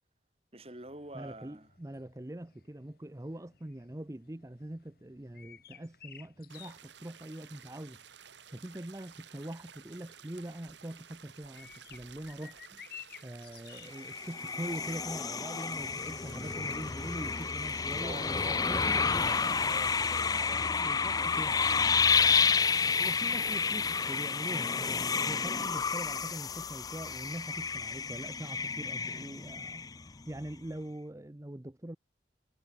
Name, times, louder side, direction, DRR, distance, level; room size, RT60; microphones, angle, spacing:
voice 1, 0.5-1.7 16.3-16.6 18.0-21.6, right 2 dB, 35° right, 4.0 m, -46 dB
sound 1, 0.6-19.4, left 9 dB, 55° left, 2.5 m, -56 dB
voice 2, 1.1-8.0 8.5-12.8 13.2-18.3 18.7-19.3 20.8-21.6 22.9-24.9 25.3-32.0, right 1 dB, 15° right, 0.7 m, -43 dB
sound 2, 6.5-20.2, right 8 dB, 85° right, 2.5 m, -54 dB
sound 3, 13.9-30.2, left 5 dB, 20° left, 0.3 m, -30 dB
head